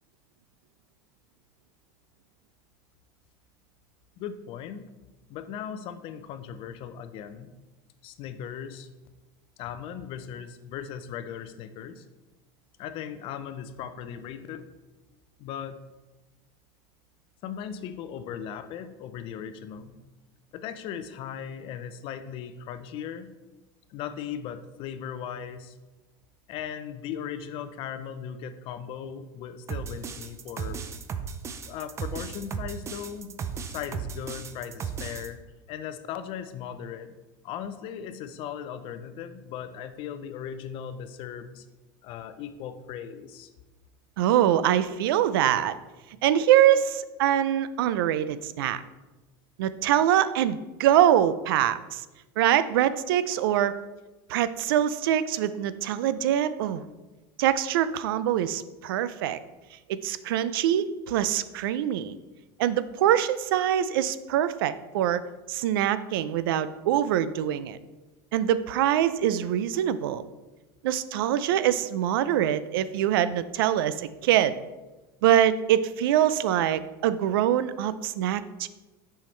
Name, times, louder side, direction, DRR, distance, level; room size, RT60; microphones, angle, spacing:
voice 1, 4.2-4.9 5.3-7.5 8.0-8.9 9.6-12.0 12.8-14.7 15.4-15.8 17.4-20.0 20.5-23.3 23.9-25.8 26.5-30.8 31.7-33.4 33.7-35.4 35.7-37.2 37.4-41.7 42.0-43.5, left 8 dB, 50° left, 11 dB, 0.5 m, -38 dB
sound 1, 29.7-35.3, right 6 dB, 25° right, 0.4 m, -35 dB
voice 2, 44.2-45.8 46.2-48.8 49.6-52.0 52.4-53.7 54.3-56.8 57.4-59.4 59.9-62.2 62.6-65.2 65.5-67.8 68.3-70.2 70.8-74.5 75.2-78.7, right 11 dB, 85° right, 15 dB, 0.4 m, -24 dB
7.2 x 5.6 x 3.2 m, 1.1 s
supercardioid pair, 130°, 12 cm